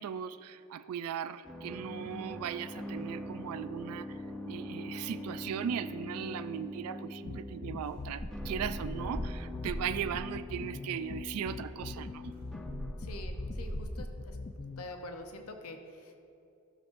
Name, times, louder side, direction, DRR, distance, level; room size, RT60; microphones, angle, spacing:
voice 1, 0.0-4.2 4.5-12.3, right 8 dB, 80° right, 14 dB, 0.3 m, -38 dB
sound 1, 1.4-13.5, left 1 dB, 5° left, 0.7 m, -43 dB
sound 2, 7.3-14.8, left 3 dB, 40° left, 0.3 m, -42 dB
sound 3, 7.8-10.4 11.4-11.5 11.7-14.4, equal, 65° right, 1.6 m, -41 dB
voice 2, 13.0-14.4 14.8-16.2, left 2 dB, 80° left, 5 dB, 0.8 m, -45 dB
15.0 x 7.2 x 2.6 m, 2.7 s
head